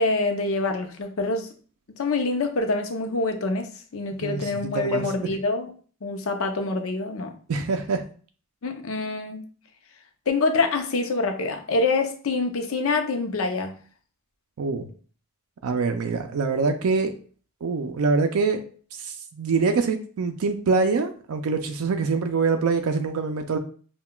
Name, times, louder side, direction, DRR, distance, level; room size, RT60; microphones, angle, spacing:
voice 1, 0.0-1.5 2.0-5.7 6.0-7.3 8.6-9.4 10.3-13.7, left 3 dB, 70° left, 5 dB, 0.6 m, -26 dB
voice 2, 4.1-4.5 4.7-5.0 7.5-8.0 14.6-14.9 15.6-17.1 17.6-18.6 18.9-23.6, right 4 dB, 80° right, 6 dB, 0.4 m, -24 dB
5.6 x 2.3 x 2.2 m, 0.42 s
head